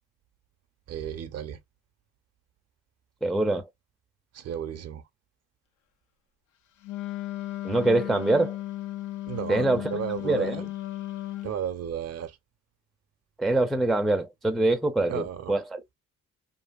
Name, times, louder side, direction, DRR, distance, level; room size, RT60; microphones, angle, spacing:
voice 1, 0.9-1.6 4.3-5.0 9.3-10.6 11.4-12.4 15.1-15.6, right 8 dB, 55° right, 0.5 m, -33 dB
voice 2, 3.2-3.7 7.6-8.6 9.5-9.9 10.2-10.7 13.4-15.9, right 2 dB, ahead, 0.4 m, -24 dB
Wind instrument woodwind instrument, 6.8-11.6, left 15 dB, 80° left, 0.5 m, -35 dB
2.7 x 2.6 x 2.2 m
cardioid pair, 90°, 30 cm